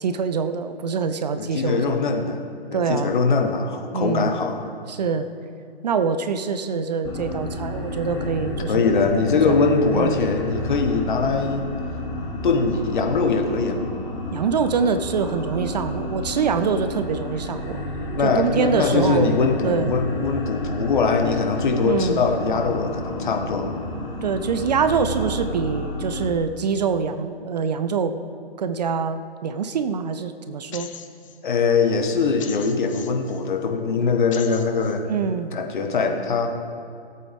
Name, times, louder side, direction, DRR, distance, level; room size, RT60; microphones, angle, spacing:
voice 1, 0.0-2.0 2.7-3.2 3.9-4.3 4.9-5.3 5.8-8.7 9.4-9.6 9.9-10.2 14.3-17.8 18.2-19.9 21.8-22.2 24.2-28.1 28.6-30.9 35.0-35.5, right 5 dB, 40° right, 10 dB, 0.6 m, -24 dB
voice 2, 1.4-2.4 2.7-4.7 8.7-11.7 12.4-13.8 18.1-23.8 31.4-35.1 35.5-36.5, left 4 dB, 50° left, 4 dB, 1.5 m, -22 dB
sound 1, 7.0-26.2, left 1 dB, 10° left, 1.7 m, -31 dB
sound 2, 30.7-31.4 32.4-33.4 34.3-35.0, left 8 dB, 30° left, 0.7 m, -39 dB
19.0 x 8.5 x 3.6 m, 2.4 s
figure-of-eight pair, 130°, 31 cm